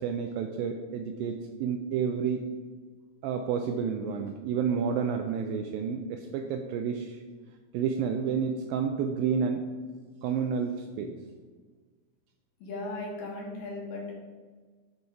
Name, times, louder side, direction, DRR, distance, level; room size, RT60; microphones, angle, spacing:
voice 1, 0.0-2.5 3.2-7.2 7.7-9.7 10.2-11.2, right 6 dB, 85° right, 5 dB, 2.1 m, -30 dB
voice 2, 12.6-14.1, left 2 dB, 65° left, -3 dB, 3.3 m, -37 dB
9.4 x 4.2 x 4.7 m, 1.4 s
omnidirectional pair, 4.5 m